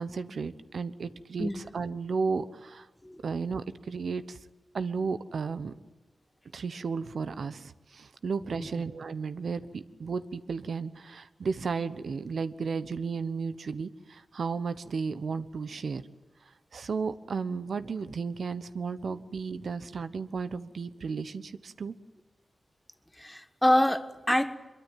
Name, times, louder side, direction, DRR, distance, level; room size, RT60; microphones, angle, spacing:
voice 1, 0.0-2.9 3.2-4.4 4.7-5.7 6.5-16.0 16.7-22.0, right 5 dB, 70° right, 1.1 m, -34 dB
voice 2, 23.2-24.6, left 1 dB, 5° left, 1.4 m, -26 dB
24.5 x 23.0 x 9.3 m
wide cardioid pair, 105°, 0 cm